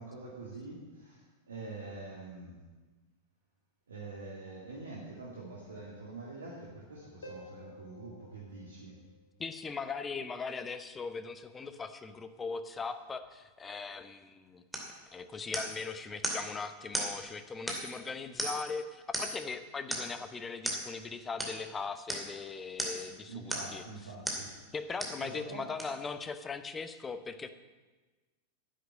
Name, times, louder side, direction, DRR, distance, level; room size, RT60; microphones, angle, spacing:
voice 1, 0.0-2.7 3.9-9.0 23.2-24.5 25.2-25.7, right 3 dB, 70° right, -4 dB, 2.4 m, -45 dB
Harp, 7.2-9.7 13.2-13.3, left 1 dB, 70° left, 1.7 m, -52 dB
voice 2, 9.4-14.6 15.1-23.8 24.7-27.5, left 4 dB, 15° left, 11 dB, 0.9 m, -39 dB
sound 1, 14.7-14.9 15.5-15.8 16.2-16.5 16.9-17.1 17.7-18.0 18.4-18.7 19.1-19.5 19.9-20.1 20.6-20.8 21.4-21.6 22.1-22.3 22.8-23.1 23.5-23.8 24.3-24.5 25.0-25.2 25.8-25.9, right 1 dB, 5° right, 2.5 m, -35 dB
11.5 x 8.1 x 8.5 m, 1.3 s
figure-of-eight pair, 90°, 0 cm